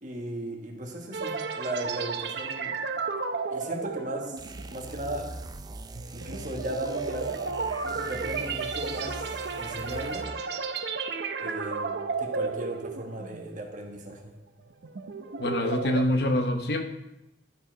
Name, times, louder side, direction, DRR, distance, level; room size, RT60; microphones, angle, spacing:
voice 1, 0.0-2.7 3.5-4.4 4.7-5.3 6.1-7.4 7.8-10.3 11.4-14.3, right 1 dB, 45° right, 1 dB, 1.5 m, -36 dB
sound 1, 1.1-13.6 14.0-14.2 14.7-16.0, right 4 dB, 70° right, 0.6 m, -33 dB
sound 2, 4.4-10.5, right 2 dB, 20° right, 0.4 m, -41 dB
voice 2, 15.4-16.8, left 1 dB, 65° left, 6 dB, 0.9 m, -25 dB
11.5 x 4.8 x 4.5 m, 0.88 s
head